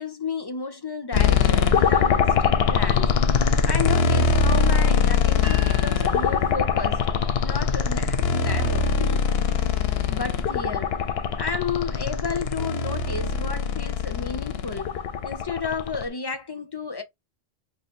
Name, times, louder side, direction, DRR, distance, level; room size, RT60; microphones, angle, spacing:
voice 1, 0.0-3.1 3.7-7.1 7.4-9.3 10.1-11.0 11.4-14.9 15.2-17.0, left 4 dB, 40° left, 0.3 m, -32 dB
sound 1, 1.1-16.0, left 6 dB, 80° left, 0.8 m, -22 dB
sound 2, 5.4-7.5, right 1 dB, 15° right, 0.7 m, -41 dB
2.8 x 2.8 x 4.1 m
omnidirectional pair, 1.0 m